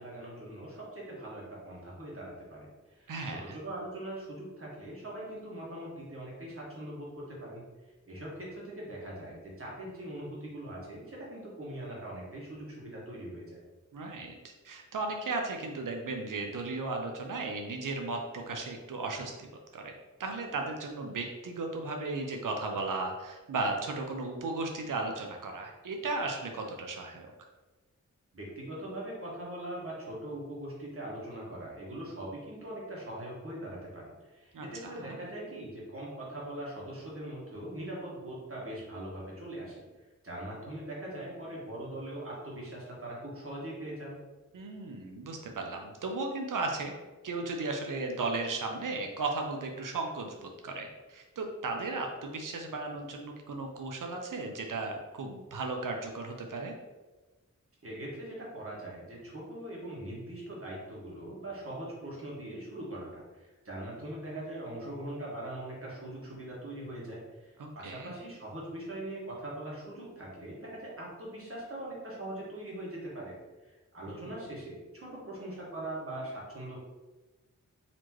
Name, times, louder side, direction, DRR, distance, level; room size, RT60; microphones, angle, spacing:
voice 1, 0.0-2.7 3.0-7.6 8.0-13.6 28.3-39.8 40.2-44.2 57.8-63.1 63.3-73.3 73.6-76.8, right 1 dB, 45° right, -5 dB, 1.5 m, -41 dB
voice 2, 3.1-3.6 13.9-14.3 14.6-19.5 19.7-19.9 20.2-27.3 34.5-35.2 44.5-46.9 47.2-56.7 67.6-68.1 74.2-74.3, right 3 dB, 85° right, 2 dB, 0.5 m, -35 dB
4.1 x 3.0 x 3.0 m, 1.2 s
wide cardioid pair, 60°, 31 cm